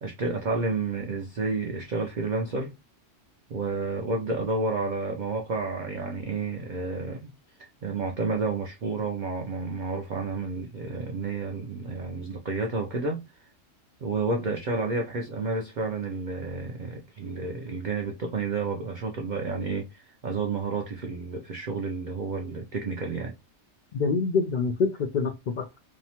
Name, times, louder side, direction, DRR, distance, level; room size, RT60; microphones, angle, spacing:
voice 1, 0.0-2.7 3.5-7.3 7.6-13.3 14.0-23.3, right 3 dB, 80° right, 0.4 m, -30 dB
voice 2, 23.9-25.8, left 4 dB, 90° left, 0.4 m, -26 dB
2.7 x 2.1 x 2.8 m
omnidirectional pair, 1.4 m